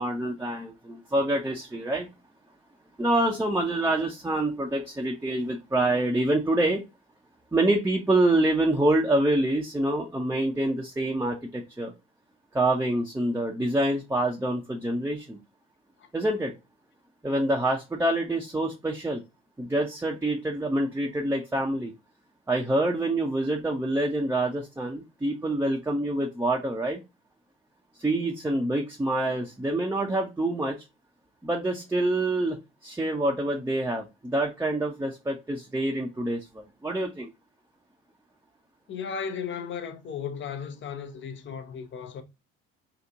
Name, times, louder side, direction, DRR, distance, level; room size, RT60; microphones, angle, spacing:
voice 1, 0.0-2.1 3.0-6.8 7.5-11.9 12.5-15.4 16.1-16.5 17.2-19.2 19.6-21.9 22.5-27.0 28.0-30.8 31.4-32.6 32.8-37.3, right 1 dB, 10° right, 0.7 m, -26 dB
voice 2, 38.9-42.2, left 6 dB, 40° left, 0.8 m, -35 dB
3.0 x 2.5 x 3.6 m
hypercardioid pair, 55°, 30 cm